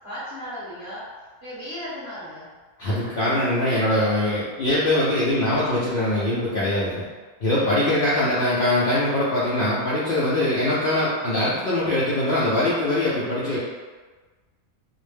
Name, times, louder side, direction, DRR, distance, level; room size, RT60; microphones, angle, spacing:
voice 1, 0.0-1.0 1.4-2.5, equal, 15° right, -12 dB, 0.9 m, -35 dB
voice 2, 2.8-7.1 7.4-13.6, left 1 dB, 75° left, -8 dB, 0.5 m, -22 dB
2.4 x 2.0 x 3.2 m, 1.4 s
omnidirectional pair, 1.5 m